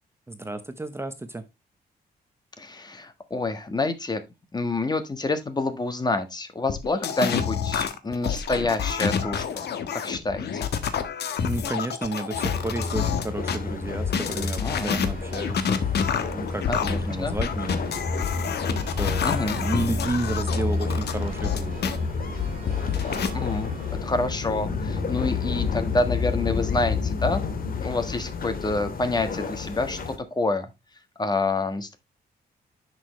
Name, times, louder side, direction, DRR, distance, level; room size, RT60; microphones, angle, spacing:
voice 1, 0.3-1.4 11.4-15.7 16.3-17.8 18.9-19.3 19.6-22.0, right 2 dB, 15° right, 0.9 m, -32 dB
voice 2, 2.6-4.2 4.5-9.7 9.9-10.7 14.6-15.0 16.7-17.4 19.2-19.6 23.3-23.7 24.0-27.4 27.8-30.7 31.2-32.0, left 2 dB, 25° left, 1.5 m, -28 dB
sound 1, 6.7-13.6 14.0-22.0 22.4-23.3, left 7 dB, 80° left, 1.3 m, -28 dB
sound 2, 12.3-30.2, left 4 dB, 60° left, 2.2 m, -30 dB
Church bell, 14.7-23.9, right 4 dB, 55° right, 3.3 m, -43 dB
11.0 x 6.2 x 3.2 m
wide cardioid pair, 125°, 17 cm